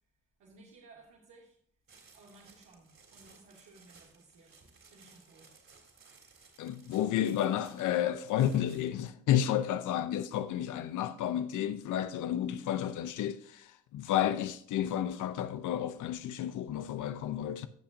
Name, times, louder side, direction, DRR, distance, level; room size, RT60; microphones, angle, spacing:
voice 1, 0.4-1.6 2.1-4.6 4.9-5.5 6.2-6.6, right 3 dB, 85° right, 2.5 m, -58 dB
sound 1, 1.9-9.0, right 4 dB, 45° right, 3.5 m, -59 dB
voice 2, 6.6-17.7, left 11 dB, 80° left, 0.7 m, -31 dB
17.0 x 5.8 x 2.6 m
cardioid pair, 90°, 30 cm